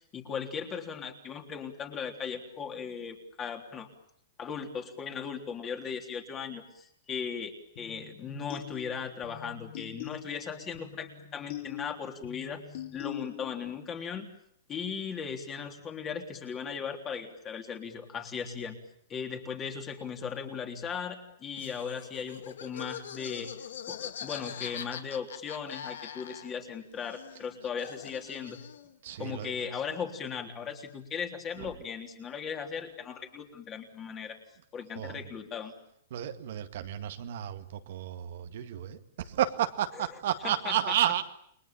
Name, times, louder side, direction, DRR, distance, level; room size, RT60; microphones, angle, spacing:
voice 1, 0.1-3.9 4.4-12.6 12.9-14.3 14.7-18.8 19.1-23.5 23.9-28.6 29.2-34.4 34.7-35.7 39.9-40.0 40.4-40.9, left 6 dB, 20° left, 4 dB, 3.6 m, -37 dB
sound 1, 7.8-13.7, left 12 dB, 45° left, 4.3 m, -43 dB
Laughter, 21.5-26.7 27.0-28.9, left 8 dB, 80° left, 2.7 m, -43 dB
voice 2, 29.0-29.7 31.6-31.7 35.0-35.2 36.1-41.2, right 11 dB, 60° right, 8 dB, 2.0 m, -32 dB
29.5 x 22.0 x 8.8 m, 0.71 s
hypercardioid pair, 165°, 0 cm